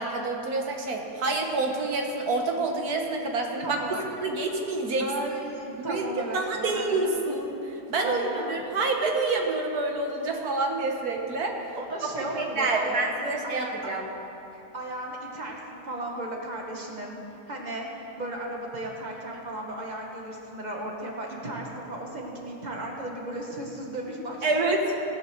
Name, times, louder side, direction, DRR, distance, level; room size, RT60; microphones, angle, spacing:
voice 1, 0.0-3.8 4.2-5.1 5.8-6.0 6.3-7.6 7.9-11.6 12.3-14.1 24.4-24.8, right 3 dB, 65° right, 2 dB, 1.6 m, -27 dB
voice 2, 3.6-4.0 5.0-7.1 8.0-8.6 11.7-14.0 14.7-17.2 17.5-17.9 18.2-24.5, right 1 dB, 25° right, -1 dB, 1.7 m, -35 dB
18.5 x 7.1 x 6.4 m, 3.0 s
omnidirectional pair, 1.8 m